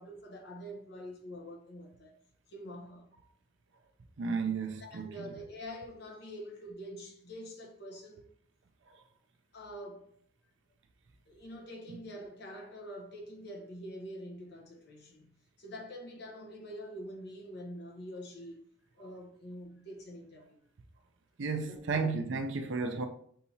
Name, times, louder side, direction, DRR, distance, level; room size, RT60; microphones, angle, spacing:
voice 1, 0.0-2.2 2.5-3.1 4.8-8.3 9.5-10.1 11.3-15.3 15.6-18.6 19.0-20.6 21.7-22.1, equal, 55° left, 0.9 m, -45 dB
voice 2, 4.2-5.1 21.4-23.1, right 4 dB, 65° right, 0.5 m, -33 dB
6.7 x 2.8 x 2.8 m
head